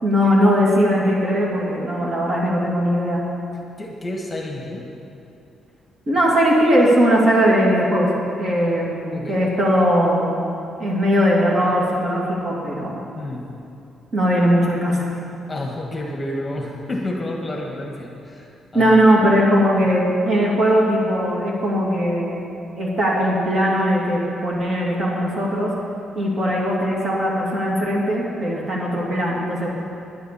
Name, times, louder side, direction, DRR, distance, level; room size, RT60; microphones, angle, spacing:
voice 1, 0.0-3.2 6.1-8.1 8.4-10.3 10.8-12.9 14.1-15.0 18.7-22.4 22.8-25.7 26.1-29.7, equal, 45° right, -4 dB, 2.9 m, -19 dB
voice 2, 3.8-4.9 9.1-9.4 13.1-13.5 15.5-19.0, left 1 dB, 20° left, -1 dB, 1.5 m, -30 dB
10.5 x 10.0 x 7.0 m, 2.7 s
cardioid pair, 135°, 0 cm